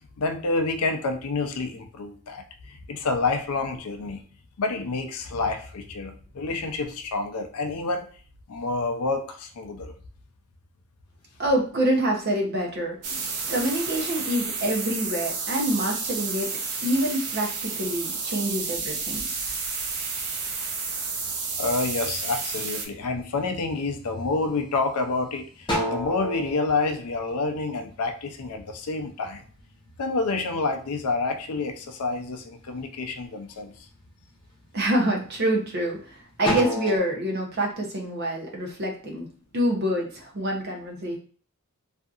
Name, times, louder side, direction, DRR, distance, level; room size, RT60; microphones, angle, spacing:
voice 1, 0.2-4.2 4.6-8.1 8.5-9.9 21.6-29.4 30.0-33.7, left 3 dB, 85° left, 5 dB, 0.5 m, -28 dB
voice 2, 11.4-13.2 13.4-16.5 16.8-19.2 34.7-39.3 39.5-41.2, right 1 dB, 45° right, 0 dB, 0.7 m, -26 dB
sound 1, 13.0-22.9, right 4 dB, 90° right, 0.6 m, -31 dB
sound 2, 18.7-20.6 21.1-21.8 22.3-22.9 23.3-24.2 24.7-24.8 25.2-28.1 28.4-30.7 31.1-32.1 32.5-33.1 33.6-33.9 34.3-36.0 36.3-37.0, left 1 dB, 20° left, 0.7 m, -32 dB
2.7 x 2.5 x 2.4 m, 0.43 s
head